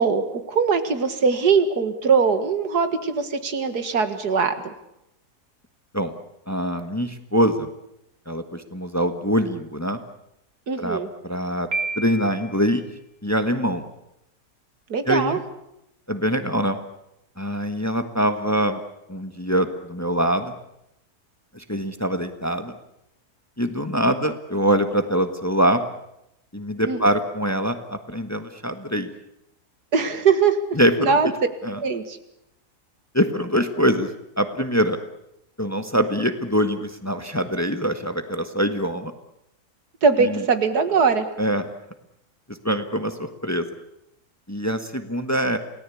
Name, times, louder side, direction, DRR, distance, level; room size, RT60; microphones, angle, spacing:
voice 1, 0.0-4.7 10.7-11.1 14.9-15.4 26.9-27.0 29.9-30.6 31.0-31.3 31.8-32.2 40.0-41.3, right 5 dB, 90° right, 9 dB, 2.4 m, -21 dB
voice 2, 6.5-7.7 8.3-10.0 10.8-11.7 12.0-12.8 13.2-13.8 15.1-15.4 16.1-16.8 17.4-18.8 19.1-20.5 21.5-22.7 23.6-25.8 26.5-29.1 30.7-31.2 31.6-31.8 33.1-34.1 34.4-35.0 35.6-39.1 40.2-40.4 41.4-41.7 42.5-43.7 44.5-45.6, equal, 10° left, 8 dB, 1.4 m, -23 dB
Piano, 11.7-12.7, right 3 dB, 60° right, 4.1 m, -29 dB
28.5 x 18.0 x 8.5 m, 0.83 s
omnidirectional pair, 1.7 m